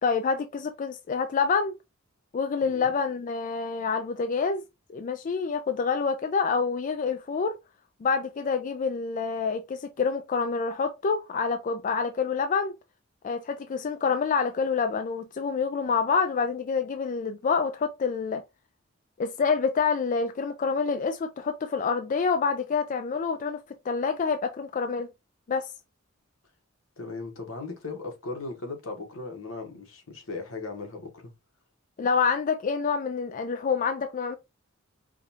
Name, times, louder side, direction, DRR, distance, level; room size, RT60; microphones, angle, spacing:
voice 1, 0.0-1.7 2.3-4.6 4.9-7.6 8.0-12.7 13.2-18.4 19.2-25.1 25.5-25.7 32.0-34.4, left 5 dB, 40° left, 0.3 m, -27 dB
voice 2, 27.0-31.3, left 3 dB, 80° left, 1.1 m, -37 dB
5.0 x 2.3 x 2.8 m
head